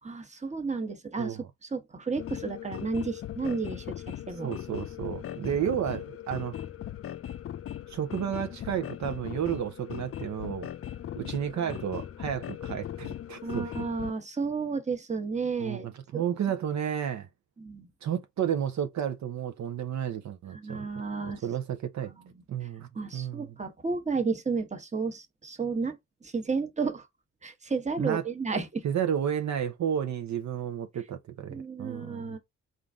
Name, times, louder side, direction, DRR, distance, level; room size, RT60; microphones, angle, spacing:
voice 1, 0.0-4.5 11.2-11.3 13.4-16.2 17.6-17.9 20.5-21.4 22.1-22.2 22.6-22.7 22.9-25.9 26.2-27.1 27.4-28.8 31.5-32.4, right 4 dB, 25° right, 1.0 m, -32 dB
sound 1, 2.2-14.1, left 11 dB, 50° left, 0.4 m, -39 dB
voice 2, 4.4-6.6 7.9-10.7 11.1-13.9 15.6-17.3 18.0-20.9 21.2-22.1 22.5-23.5 28.0-28.2 28.8-32.4, right 9 dB, 65° right, 0.6 m, -32 dB
3.7 x 2.5 x 3.5 m
cardioid pair, 70°, 30 cm